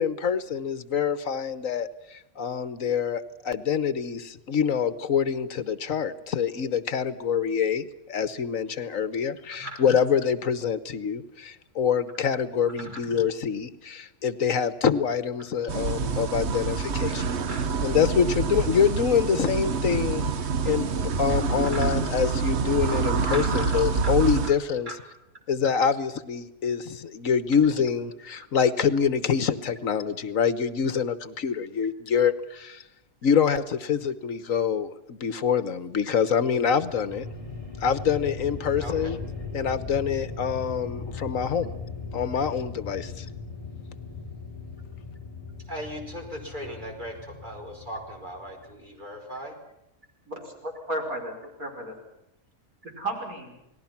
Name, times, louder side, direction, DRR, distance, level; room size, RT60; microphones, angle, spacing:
voice 1, 0.0-17.4 17.8-20.2 20.6-24.9 25.5-32.8 33.2-37.3 37.8-39.2 39.5-41.7 42.1-43.3, left 7 dB, 70° left, 14 dB, 1.5 m, -26 dB
voice 2, 9.5-9.8 12.8-13.0 15.4-15.5 17.5-17.6 21.6-22.0 23.3-24.1 24.4-24.5 24.9-25.0 25.6-25.7 38.8-39.1 45.7-49.6, right 1 dB, 30° right, 2 dB, 5.1 m, -38 dB
sound 1, 15.7-24.5, right 5 dB, 55° right, 1.2 m, -27 dB
sound 2, 36.5-48.8, left 4 dB, 25° left, 3.6 m, -38 dB
voice 3, 50.3-52.0 52.8-53.6, right 1 dB, 80° right, 1 dB, 5.8 m, -34 dB
29.0 x 19.5 x 5.9 m, 0.88 s
omnidirectional pair, 1.5 m